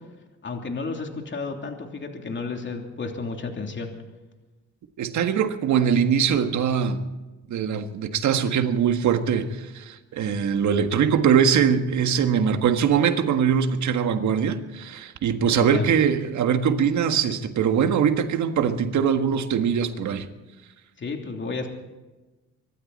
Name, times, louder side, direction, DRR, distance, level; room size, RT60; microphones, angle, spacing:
voice 1, 0.4-3.9 15.5-15.9 21.0-21.7, left 4 dB, 40° left, 3.0 m, -32 dB
voice 2, 5.0-7.1 7.5-20.3, right 7 dB, 70° right, 1.6 m, -22 dB
25.0 x 13.0 x 4.2 m
cardioid pair, 90°, 30 cm